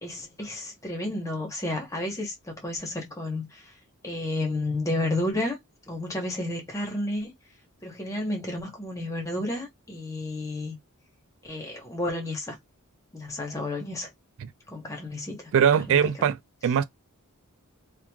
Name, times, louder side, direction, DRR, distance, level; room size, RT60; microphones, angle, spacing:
voice 1, 0.0-3.7 4.0-5.6 5.9-7.3 7.8-10.8 11.4-12.6 13.1-14.1 14.7-15.5 15.9-16.3, left 1 dB, 15° left, 0.9 m, -31 dB
voice 2, 15.5-16.4 16.6-16.8, right 7 dB, 65° right, 0.3 m, -21 dB
3.0 x 2.3 x 2.2 m
head